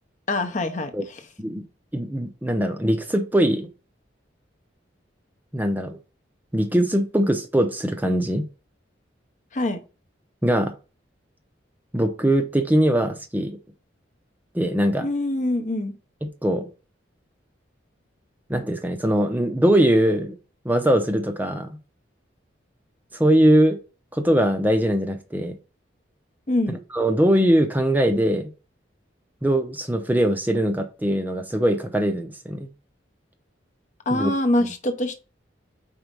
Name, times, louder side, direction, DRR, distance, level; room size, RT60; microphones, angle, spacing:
voice 1, 0.3-1.2 9.5-9.8 15.0-15.9 26.5-26.8 34.1-35.2, left 1 dB, 40° left, 0.7 m, -24 dB
voice 2, 1.9-3.7 5.5-6.0 6.5-8.5 10.4-10.7 11.9-13.6 14.5-15.1 16.2-16.7 18.5-20.4 20.6-21.8 23.1-23.8 24.1-25.6 26.9-28.5 29.4-32.7 34.1-34.3 34.6-34.7, right 1 dB, 10° right, 0.6 m, -21 dB
4.7 x 4.1 x 5.3 m
head